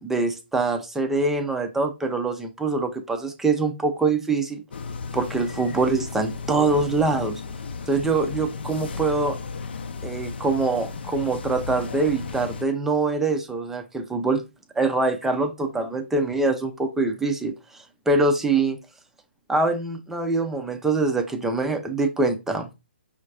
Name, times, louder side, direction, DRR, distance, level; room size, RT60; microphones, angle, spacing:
voice 1, 0.0-4.6 5.1-7.4 7.9-9.4 10.0-14.4 14.8-18.8 19.5-22.7, right 3 dB, 5° right, 0.5 m, -24 dB
sound 1, 4.7-12.6, left 4 dB, 60° left, 0.6 m, -34 dB
5.5 x 2.5 x 3.2 m
hypercardioid pair, 140°, 6 cm